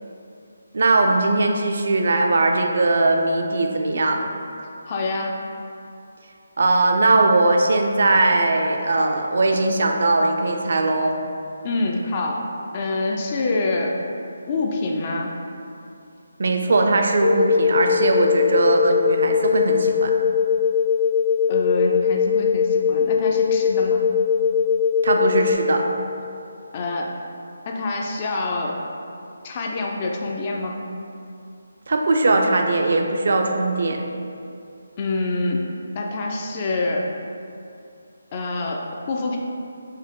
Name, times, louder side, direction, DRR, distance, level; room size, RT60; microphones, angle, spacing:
voice 1, 0.7-4.2 6.6-11.2 16.4-20.1 25.0-25.8 31.9-34.0, right 2 dB, 60° right, 3 dB, 0.4 m, -19 dB
voice 2, 4.9-5.4 11.6-12.5 12.7-14.0 14.5-15.3 21.5-24.0 26.7-27.2 27.7-28.8 29.4-30.8 35.0-37.1 38.3-39.4, left 2 dB, 30° left, 0 dB, 0.4 m, -26 dB
sound 1, 17.2-25.5, left 7 dB, 80° left, 1.0 m, -20 dB
4.6 x 2.9 x 3.6 m, 2.6 s
hypercardioid pair, 165°, 0 cm